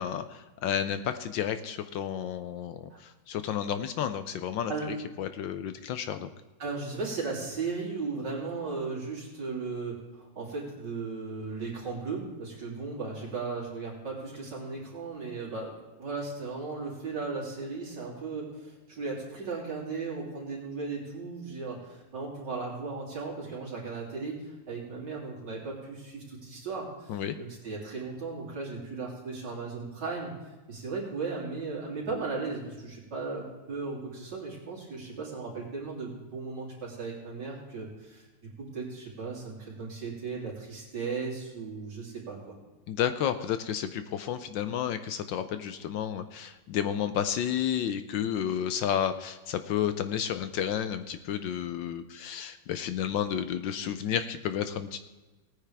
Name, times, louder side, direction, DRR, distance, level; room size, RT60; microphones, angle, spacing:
voice 1, 0.0-4.7 5.2-6.3 27.1-27.4 42.9-55.0, left 9 dB, 75° left, 10 dB, 1.3 m, -31 dB
voice 2, 6.6-30.3 30.7-42.6, right 4 dB, 55° right, -4 dB, 3.8 m, -36 dB
18.5 x 9.5 x 3.4 m, 1.2 s
omnidirectional pair, 2.2 m